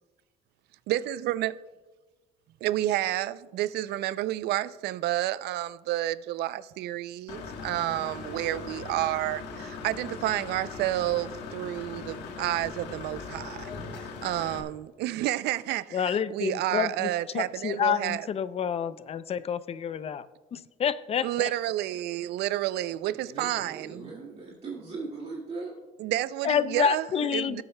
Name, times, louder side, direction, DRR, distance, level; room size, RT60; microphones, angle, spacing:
voice 1, 0.9-1.5 2.6-13.7 14.2-18.3 21.2-24.0 26.0-27.6, right 14 dB, 75° right, 0.4 m, -30 dB
Engine / Mechanisms, 7.3-14.6, left 4 dB, 80° left, 1.3 m, -40 dB
voice 2, 15.9-17.1 17.3-20.3 20.5-21.5 26.4-27.6, left 8 dB, 35° left, 0.4 m, -28 dB
voice 3, 23.0-25.7, right 4 dB, 35° right, 2.0 m, -39 dB
20.0 x 8.0 x 2.2 m
cardioid pair, 110°, 17 cm